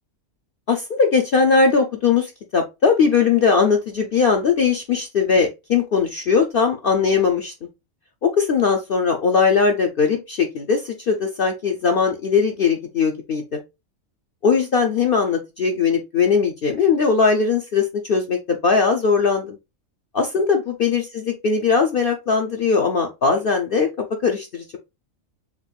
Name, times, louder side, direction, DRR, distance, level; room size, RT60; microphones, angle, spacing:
voice 1, 0.7-7.5 8.2-13.4 14.4-19.6 20.1-23.9 24.2-24.8, left 5 dB, 55° left, 0.7 m, -19 dB
4.7 x 2.5 x 3.3 m
omnidirectional pair, 1.4 m